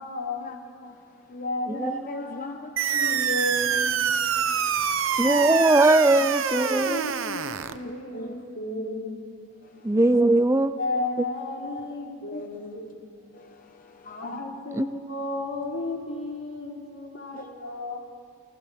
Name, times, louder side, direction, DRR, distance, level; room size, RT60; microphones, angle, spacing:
voice 1, 0.0-0.7 1.3-2.6 2.9-4.1 5.2-5.6 6.4-9.3 10.0-10.1 10.8-13.0 14.2-18.0, left 2 dB, 75° left, -1 dB, 3.7 m, -33 dB
voice 2, 0.8-1.2 1.7-3.1 4.4-5.4 7.3-7.4 7.8-8.4 9.6-10.1 11.6-12.0 12.3-12.5 13.3-14.4 17.3-17.5, left 1 dB, 40° left, 5 dB, 0.9 m, -40 dB
sound 1, 2.8-7.8, right 7 dB, 75° right, 0.8 m, -26 dB
voice 3, 5.2-7.0 9.8-10.8 14.8-14.9, right 2 dB, 15° right, 12 dB, 0.4 m, -20 dB
29.5 x 25.0 x 3.6 m, 2.4 s
head